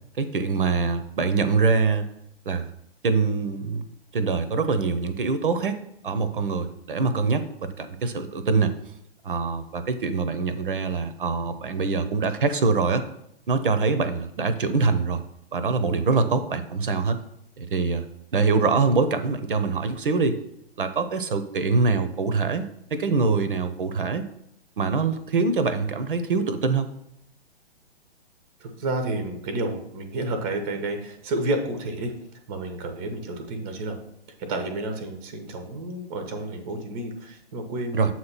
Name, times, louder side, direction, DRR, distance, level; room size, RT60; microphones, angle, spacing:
voice 1, 0.2-2.1 2.5-2.7 3.0-3.8 4.1-5.8 6.0-8.7 9.2-13.0 13.5-15.2 15.5-17.2 17.6-18.1 18.3-20.4 20.8-22.6 22.9-24.2 24.8-26.9 37.9-38.1, right 4 dB, 55° right, 11 dB, 0.6 m, -24 dB
voice 2, 28.6-32.1 32.5-34.0 34.4-38.1, right 2 dB, 15° right, 6 dB, 0.6 m, -30 dB
7.4 x 2.9 x 5.8 m, 0.76 s
figure-of-eight pair, 120°, 31 cm